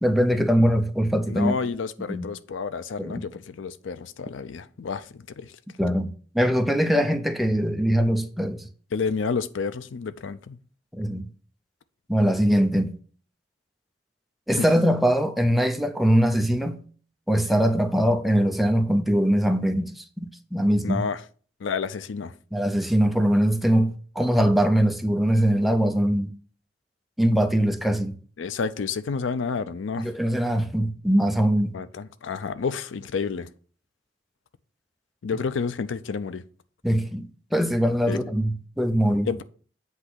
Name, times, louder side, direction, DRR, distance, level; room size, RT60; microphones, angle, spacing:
voice 1, 0.0-1.6 2.1-2.3 3.0-3.3 5.8-8.7 10.9-11.2 12.1-13.0 14.5-16.8 17.3-21.0 22.5-26.3 27.2-28.2 30.0-31.7 36.8-39.3, equal, ahead, 0.5 m, -22 dB
voice 2, 1.3-5.5 8.9-10.6 20.8-21.2 21.6-22.3 28.4-30.1 31.7-33.5 35.2-36.4 38.1-38.2 39.3-39.4, left 5 dB, 85° left, 0.5 m, -30 dB
8.1 x 2.9 x 6.2 m
head